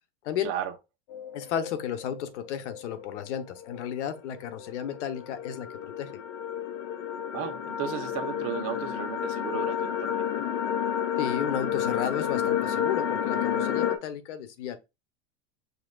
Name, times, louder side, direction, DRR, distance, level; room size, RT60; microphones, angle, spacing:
voice 1, 0.4-0.7 7.3-10.3, right 10 dB, 45° right, 0.9 m, -34 dB
sound 1, 1.1-14.0, left 9 dB, 60° left, 0.8 m, -31 dB
voice 2, 1.3-6.1 11.2-14.8, left 9 dB, 90° left, 0.9 m, -33 dB
6.3 x 2.9 x 2.2 m
supercardioid pair, 145°, 34 cm